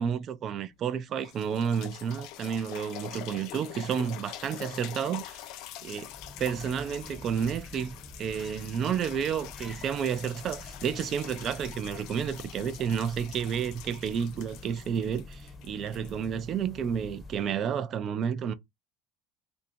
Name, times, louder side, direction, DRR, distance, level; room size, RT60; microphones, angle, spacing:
voice 1, 0.0-5.4 5.8-6.1 6.4-18.5, right 7 dB, 40° right, 0.4 m, -31 dB
sound 1, 0.7-0.8 1.2-17.0 17.6-17.7, left 13 dB, 65° left, 0.4 m, -45 dB
sound 2, 5.9-17.7, left 2 dB, 10° left, 0.8 m, -47 dB
2.7 x 2.7 x 4.3 m
cardioid pair, 135°, 0 cm